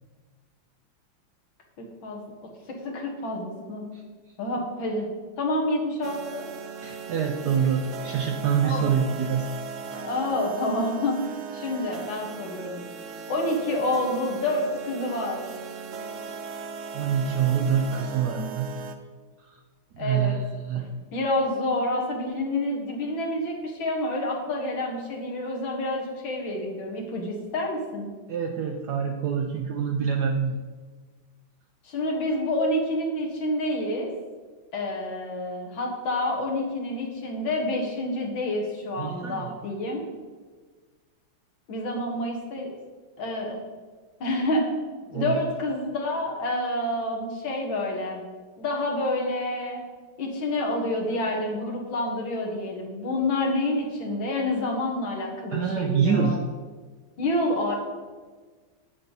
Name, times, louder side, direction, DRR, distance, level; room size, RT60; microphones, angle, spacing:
voice 1, 1.8-2.2 2.7-3.8 4.4-5.1 5.4-6.5 8.6-8.9 9.9-11.2 11.5-12.8 13.3-15.4 20.0-20.4 20.8-20.9 21.1-28.1 31.8-34.1 34.7-40.0 41.7-42.7 43.2-43.6 44.2-44.7 45.1-48.2 48.6-49.8 50.2-56.4 57.2-57.8, left 1 dB, 70° left, 0 dB, 2.4 m, -28 dB
sound 1, 6.0-19.0, right 5 dB, 85° right, 0.6 m, -38 dB
voice 2, 6.8-9.5 16.5-16.6 16.9-18.7 19.5-19.6 19.9-20.8 28.3-30.6 39.0-39.6 45.1-45.4 55.5-56.4, right 7 dB, 70° right, 3 dB, 1.0 m, -26 dB
9.1 x 8.8 x 4.1 m, 1.4 s
omnidirectional pair, 2.2 m